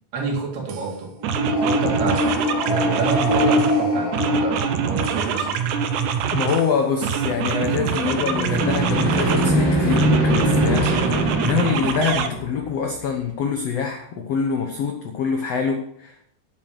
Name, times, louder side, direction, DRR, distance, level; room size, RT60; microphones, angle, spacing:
voice 1, 0.1-1.2 1.5-2.3 2.6-5.6, right 4 dB, 90° right, 1 dB, 4.2 m, -29 dB
sound 1, 0.7-0.8 1.2-3.8 4.1-6.7 7.0-9.5 9.9-12.3, right 7 dB, 70° right, 2.1 m, -24 dB
sound 2, 1.2-5.5 8.1-13.1, equal, 5° right, 2.5 m, -23 dB
voice 2, 6.3-16.3, left 6 dB, 80° left, 4 dB, 1.4 m, -25 dB
9.5 x 8.5 x 6.1 m, 0.72 s
omnidirectional pair, 4.4 m